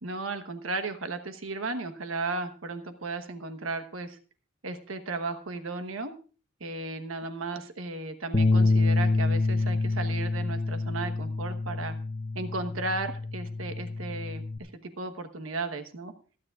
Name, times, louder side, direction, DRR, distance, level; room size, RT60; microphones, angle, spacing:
voice 1, 0.0-4.2 4.6-6.1 6.6-12.0 12.3-16.1, right 3 dB, 80° right, 8 dB, 1.2 m, -35 dB
Bass guitar, 8.3-14.6, left 3 dB, 30° left, 0.7 m, -27 dB
26.0 x 9.6 x 2.4 m, 0.38 s
head